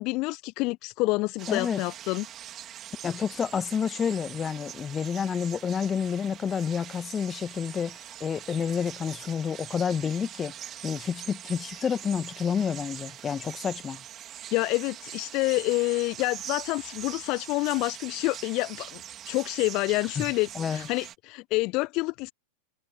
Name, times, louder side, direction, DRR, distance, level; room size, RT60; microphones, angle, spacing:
voice 1, 0.0-2.3 14.5-19.0 19.3-22.3, left 24 dB, 40° left, 1.2 m, -28 dB
sound 1, 1.4-21.1, right 11 dB, 30° right, 4.3 m, -43 dB
voice 2, 1.5-1.8 3.0-10.5 10.8-14.0 20.2-20.3 20.5-20.9, left 7 dB, 20° left, 2.1 m, -29 dB
figure-of-eight pair, 90°, 0 cm